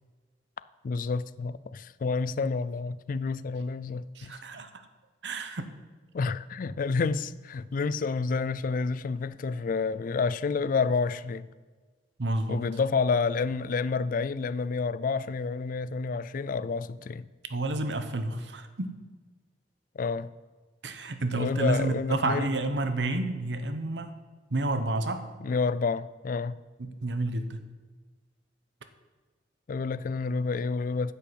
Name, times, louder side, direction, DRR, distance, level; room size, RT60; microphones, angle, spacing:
voice 1, 0.8-4.4 6.1-11.5 12.5-17.3 19.9-20.3 21.3-22.5 25.4-26.6 29.7-31.1, left 4 dB, 50° left, 0.4 m, -29 dB
voice 2, 4.2-4.7 5.2-5.7 12.2-12.6 17.5-18.9 20.8-24.1 24.5-25.2 26.8-27.6, right 2 dB, 90° right, 1.0 m, -30 dB
9.9 x 5.6 x 7.8 m
head